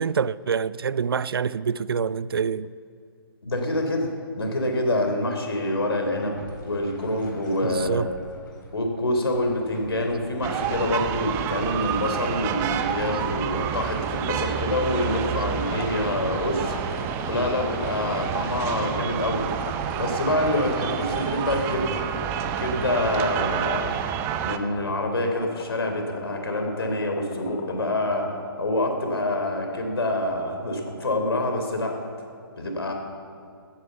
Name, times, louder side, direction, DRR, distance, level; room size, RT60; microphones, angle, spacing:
voice 1, 0.0-2.7 7.6-8.1, right 6 dB, 65° right, 0.4 m, -26 dB
voice 2, 3.4-4.1 4.3-6.4 6.6-8.0 8.7-16.7 17.2-19.4 20.0-22.0 22.6-23.9 24.4-28.3 28.6-31.9 32.6-32.9, left 1 dB, 75° left, 3.3 m, -26 dB
sound 1, 6.2-23.2, left 1 dB, 50° left, 4.1 m, -46 dB
sound 2, 10.4-24.6, right 9 dB, 20° right, 0.6 m, -29 dB
sound 3, 15.0-28.4, left 6 dB, 30° left, 1.4 m, -40 dB
15.5 x 10.5 x 7.0 m
figure-of-eight pair, 135°, 13 cm